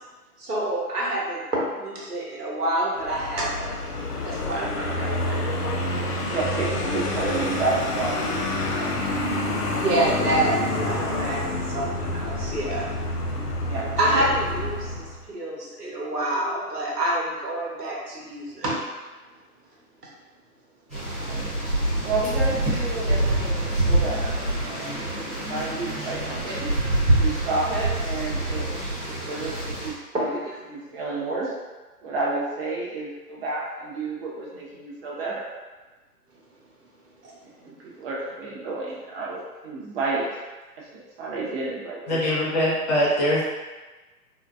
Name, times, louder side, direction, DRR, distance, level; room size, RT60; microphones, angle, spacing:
voice 1, 0.4-3.7 4.2-5.5 9.7-12.9 14.0-18.8 30.1-30.6 37.2-37.3, right 1 dB, 85° right, -4 dB, 0.9 m, -27 dB
Vehicle, 3.0-15.2, left 2 dB, 85° left, 0.6 m, -28 dB
voice 2, 6.2-8.4 8.7-8.9 9.4-9.6 13.7-14.3 21.2-21.5 22.0-26.7 27.1-28.7 29.0-30.4 30.7-31.5 32.0-35.5 37.6-40.3 40.8-42.2, right 3 dB, 40° right, -5 dB, 0.8 m, -31 dB
sound 1, 20.9-29.9, right 1 dB, ahead, 0.4 m, -25 dB
voice 3, 42.1-43.4, equal, 30° left, -6 dB, 0.7 m, -22 dB
3.8 x 2.3 x 2.3 m, 1.2 s
figure-of-eight pair, 115°, 46 cm